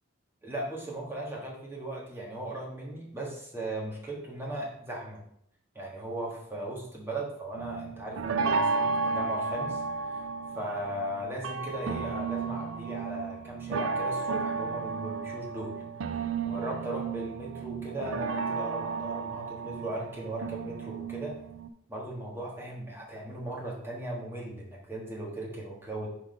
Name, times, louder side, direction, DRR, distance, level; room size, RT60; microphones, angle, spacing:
voice 1, 0.4-5.2 5.7-10.3 10.5-15.7 16.1-21.3 21.9-26.1, right 1 dB, 10° right, -3 dB, 1.3 m, -37 dB
sound 1, 7.6-21.7, right 4 dB, 80° right, 0.4 m, -33 dB
4.8 x 4.0 x 5.0 m, 0.73 s
head